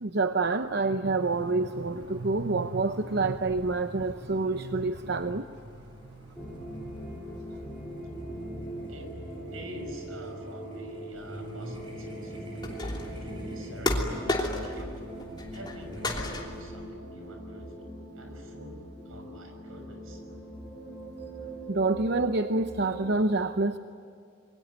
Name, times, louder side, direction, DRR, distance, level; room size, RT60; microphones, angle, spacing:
voice 1, 0.0-5.5 21.7-23.8, right 3 dB, 50° right, 9 dB, 0.8 m, -27 dB
sound 1, 1.2-16.4, equal, 25° right, 6.0 m, -46 dB
sound 2, 6.3-23.2, right 1 dB, ahead, 6.5 m, -41 dB
voice 2, 8.9-9.2 9.5-15.1 15.5-20.2, right 1 dB, 70° right, 4 dB, 6.0 m, -47 dB
sound 3, 12.6-13.2 13.9-14.9 15.2-15.8 16.0-16.7, left 1 dB, 20° left, 3.1 m, -31 dB
27.5 x 22.5 x 9.5 m, 2.4 s
head